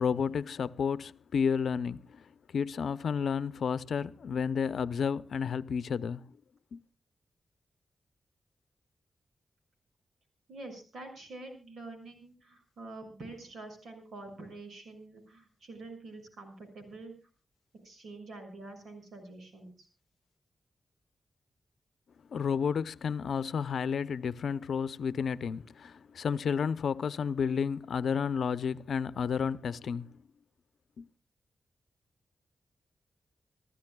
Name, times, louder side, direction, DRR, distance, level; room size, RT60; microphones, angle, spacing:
voice 1, 0.0-2.2 2.5-6.2 6.7-6.8 22.3-30.1 31.0-31.1, left 6 dB, 80° left, 0.6 m, -31 dB
voice 2, 10.5-17.1 17.8-19.9, right 2 dB, 80° right, 6.5 m, -46 dB
28.5 x 14.0 x 2.3 m
wide cardioid pair, 115°, 0 cm